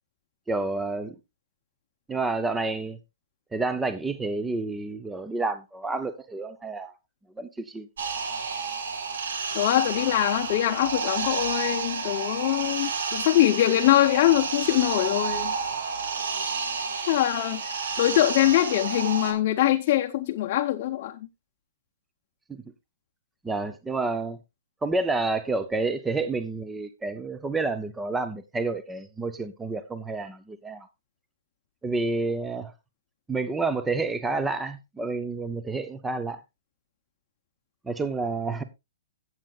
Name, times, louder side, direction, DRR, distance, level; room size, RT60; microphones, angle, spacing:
voice 1, 0.5-1.2 2.1-3.0 3.5-6.9 7.4-7.9 23.4-24.4 24.8-30.9 31.8-32.7 33.3-36.4 37.8-38.6, right 3 dB, 5° right, 0.5 m, -29 dB
sound 1, 8.0-19.3, right 5 dB, 80° right, 2.6 m, -30 dB
voice 2, 9.5-15.5 17.1-21.2, left 14 dB, 35° left, 0.7 m, -23 dB
17.0 x 7.5 x 2.4 m
hypercardioid pair, 170°, 0 cm